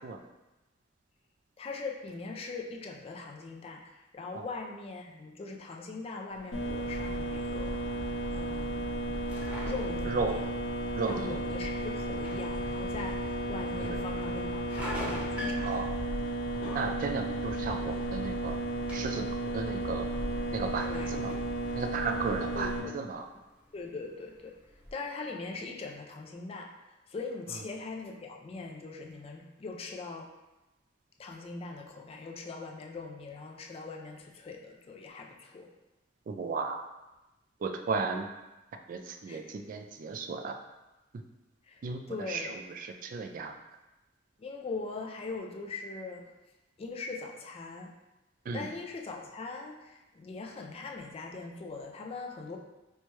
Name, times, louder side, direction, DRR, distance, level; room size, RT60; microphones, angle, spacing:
voice 1, 1.6-7.8 8.3-9.2 9.6-10.4 11.1-15.8 20.8-21.2 22.5-22.9 23.7-24.6 24.9-26.7 27.1-30.3 31.2-35.7 39.3-39.6 41.6-41.8 42.1-42.6 44.4-46.3 46.8-47.9 48.5-52.6, left 3 dB, 30° left, 1 dB, 0.3 m, -41 dB
sound 1, 6.3-24.9, equal, 10° right, 0.7 m, -48 dB
sound 2, 6.5-22.8, right 1 dB, 75° left, 0.7 m, -33 dB
voice 2, 10.1-10.4 10.9-11.4 13.8-14.0 15.6-16.0 16.7-18.6 18.9-19.2 19.5-20.1 20.5-21.3 21.7-23.3 36.3-36.8 37.6-38.3 38.9-40.6 41.1-41.2 41.8-42.0 42.3-43.5 48.5-48.7, right 4 dB, 45° right, 5 dB, 0.3 m, -34 dB
4.3 x 2.2 x 3.0 m, 1.0 s
head